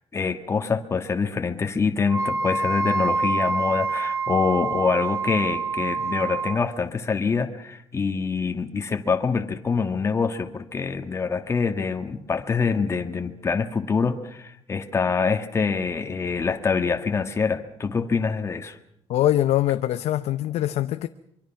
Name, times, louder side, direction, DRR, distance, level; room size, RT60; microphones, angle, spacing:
voice 1, 0.1-18.8, left 5 dB, 25° left, 1.7 m, -25 dB
Wind instrument woodwind instrument, 2.1-6.6, right 3 dB, 25° right, 1.9 m, -26 dB
voice 2, 19.1-21.1, left 13 dB, 85° left, 0.8 m, -23 dB
24.5 x 24.0 x 5.9 m
cardioid pair, 150°, 11 cm